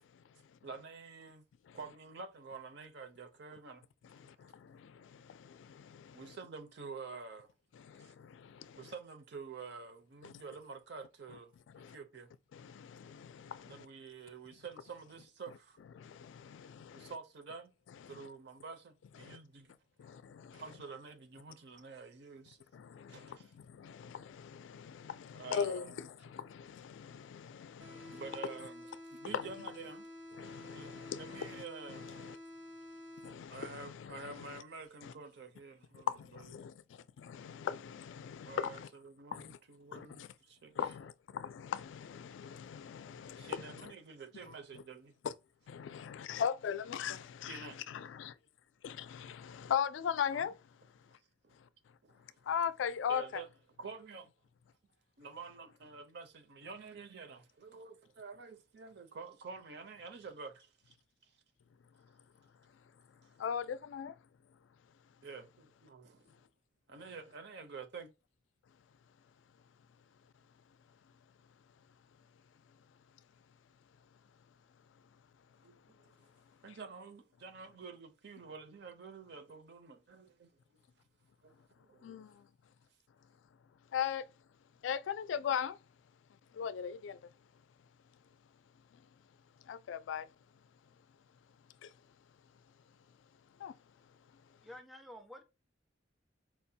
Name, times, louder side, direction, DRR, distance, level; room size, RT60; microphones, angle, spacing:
voice 1, 0.6-1.5 1.7-3.9 6.1-7.5 8.0-8.1 8.8-12.3 13.6-15.8 16.9-17.7 18.1-19.7 20.5-22.6 23.1-23.6 25.3-26.0 28.1-30.1 30.7-30.9 31.2-32.2 33.5-36.7 38.5-40.8 43.4-45.1 47.5-47.8 50.3-50.5 51.1-51.5 52.0-52.4 53.1-53.5 53.8-54.3 55.2-61.0 61.2-61.3 65.2-66.4 66.9-68.1 75.6-76.1 76.6-80.6 81.4-82.2, right 4 dB, 65° right, 0.6 m, -49 dB
voice 2, 4.2-6.2 7.8-8.8 10.2-10.3 11.7-12.0 12.5-13.9 16.0-17.1 19.2-19.4 20.0-20.6 22.7-23.4 23.7-28.2 29.3-29.4 30.4-31.6 31.9-32.4 33.2-34.3 35.0-35.1 35.9-38.9 39.3-39.6 39.9-40.3 40.8-43.6 45.2-45.3 45.7-48.3 48.8-50.5 52.5-53.3 63.4-64.2 82.0-82.4 83.9-84.3 84.8-85.8 86.5-87.2 89.7-90.3 91.8-91.9 93.6-93.7, left 8 dB, 80° left, 0.3 m, -39 dB
sound 1, 27.8-33.8, left 1 dB, 80° right, 1.0 m, -50 dB
voice 3, 94.6-95.4, left 1 dB, ahead, 0.4 m, -50 dB
4.5 x 2.2 x 2.7 m
head